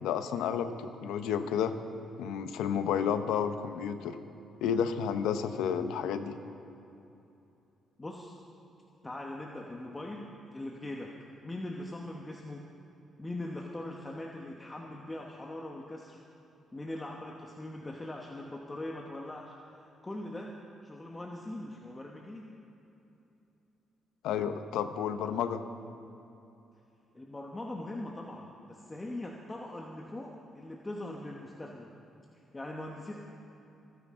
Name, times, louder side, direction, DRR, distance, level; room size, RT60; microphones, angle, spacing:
voice 1, 0.0-1.7 2.2-4.2 4.6-6.4 24.2-25.6, left 8 dB, 90° left, 9 dB, 0.8 m, -31 dB
voice 2, 8.0-8.3 9.0-11.1 11.4-12.6 13.2-16.2 16.7-20.5 20.8-22.5 27.1-31.9 32.3-33.1, left 1 dB, 20° left, 0 dB, 1.1 m, -41 dB
28.0 x 9.9 x 3.7 m, 2.8 s
cardioid pair, 90°, 0 cm